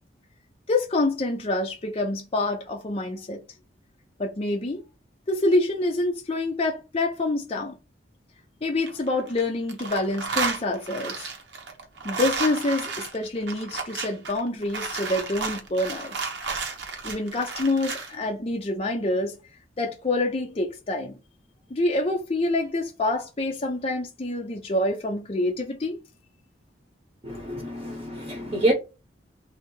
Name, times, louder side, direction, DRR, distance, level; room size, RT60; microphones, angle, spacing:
voice 1, 0.7-3.4 4.2-4.8 5.3-7.8 8.6-11.3 12.0-16.2 17.0-19.3 19.8-21.2 21.7-26.0, left 2 dB, 30° left, 0.6 m, -26 dB
sound 1, 8.6-9.4 9.7-18.1, right 4 dB, 70° right, 0.9 m, -32 dB
voice 2, 27.2-28.7, right 1 dB, 30° right, 1.0 m, -27 dB
3.3 x 2.8 x 4.5 m
head